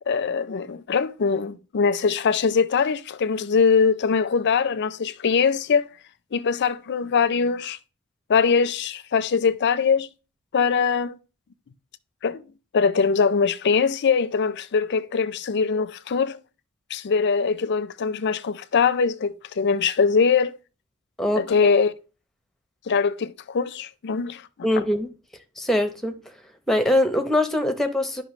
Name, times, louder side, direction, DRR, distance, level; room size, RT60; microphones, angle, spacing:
voice 1, 0.1-5.9 6.3-7.8 8.3-10.1 10.5-11.2 12.2-12.4 12.7-16.4 16.9-20.5 21.4-21.9 22.9-24.8, left 5 dB, 50° left, 0.4 m, -22 dB
voice 2, 24.6-25.1 25.6-26.2 26.7-28.2, left 1 dB, ahead, 0.7 m, -22 dB
10.5 x 5.5 x 3.1 m
head